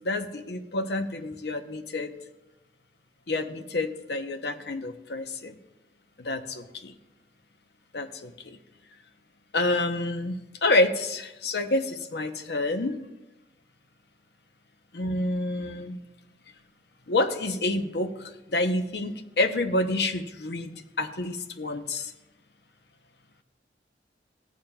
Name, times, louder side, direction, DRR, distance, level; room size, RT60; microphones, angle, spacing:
voice 1, 0.0-2.1 3.3-5.5 6.2-6.9 7.9-8.3 9.5-13.0 14.9-16.0 17.1-18.1 18.5-20.7 21.0-22.1, left 2 dB, 65° left, 7 dB, 0.7 m, -28 dB
15.0 x 8.7 x 2.3 m, 0.99 s
head